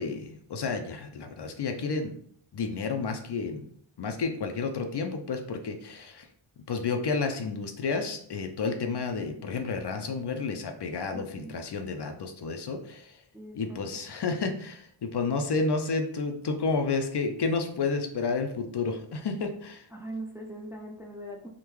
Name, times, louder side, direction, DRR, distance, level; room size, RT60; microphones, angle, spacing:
voice 1, 0.0-2.1 2.5-3.7 4.0-6.3 6.7-13.2 13.5-19.8, left 4 dB, 55° left, 5 dB, 0.5 m, -31 dB
voice 2, 11.1-11.5 13.3-14.0 19.9-21.5, right 1 dB, 5° right, 0 dB, 0.4 m, -41 dB
3.6 x 2.2 x 3.0 m, 0.62 s
wide cardioid pair, 75°, 49 cm